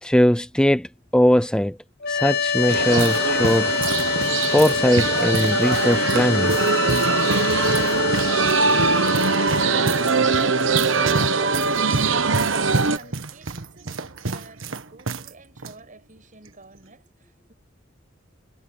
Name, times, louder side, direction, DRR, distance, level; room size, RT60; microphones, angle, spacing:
voice 1, 0.0-0.9 1.1-1.8 2.1-3.7 4.5-6.6, equal, 5° left, 0.5 m, -20 dB
sound 1, 2.0-13.1, left 5 dB, 55° left, 0.9 m, -26 dB
sound 2, 2.4-15.3 15.6-15.7 16.5-16.8, right 3 dB, 90° right, 1.5 m, -30 dB
sound 3, 2.7-13.0, right 4 dB, 70° right, 1.1 m, -22 dB
voice 2, 12.9-17.5, right 3 dB, 45° right, 7.8 m, -50 dB
head